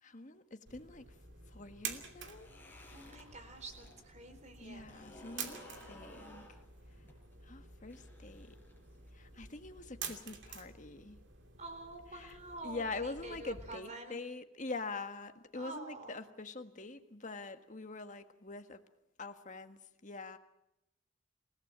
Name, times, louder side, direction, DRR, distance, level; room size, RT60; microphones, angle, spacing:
voice 1, 0.0-1.2 1.5-2.5 3.0-3.2 4.6-6.5 7.4-8.5 9.1-11.2 12.1-12.4 12.6-18.8 19.2-20.4, left 3 dB, 40° left, 8 dB, 1.6 m, -44 dB
sound 1, 0.7-13.7, right 6 dB, 60° right, 2.7 m, -49 dB
sound 2, 2.2-4.0 4.3-9.1, left 1 dB, 10° left, 5.9 m, -55 dB
voice 2, 2.9-4.9 11.6-14.2 15.5-16.2, right 2 dB, 35° right, 8 dB, 4.2 m, -48 dB
28.5 x 17.5 x 7.4 m, 0.87 s
head